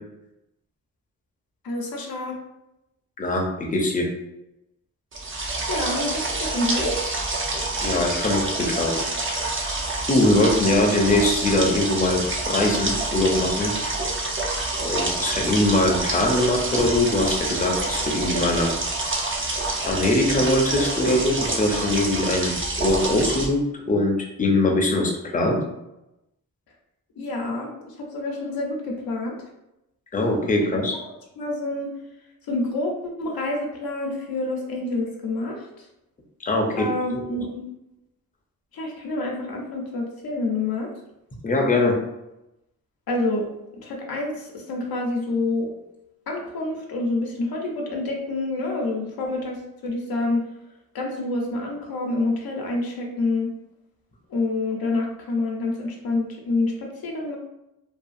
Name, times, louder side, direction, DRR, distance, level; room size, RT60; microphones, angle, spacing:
voice 1, 1.6-2.3 5.7-7.0 27.2-29.4 30.8-31.0 31.4-31.9 32.5-35.9 36.8-37.6 38.7-40.9 43.1-43.5 43.8-45.7 46.3-49.6 49.8-50.5 50.9-53.5 54.3-57.4, left 2 dB, 80° left, 0 dB, 0.7 m, -27 dB
voice 2, 3.2-4.1 7.8-9.0 9.4-9.7 10.1-13.7 14.8-18.8 19.8-25.6 30.1-31.0 36.4-37.2 41.4-42.0, left 1 dB, 25° left, 1 dB, 0.6 m, -22 dB
sound 1, 5.1-23.5, right 2 dB, 35° right, 0.6 m, -27 dB
2.7 x 2.4 x 2.4 m, 0.89 s
cardioid pair, 55°, 36 cm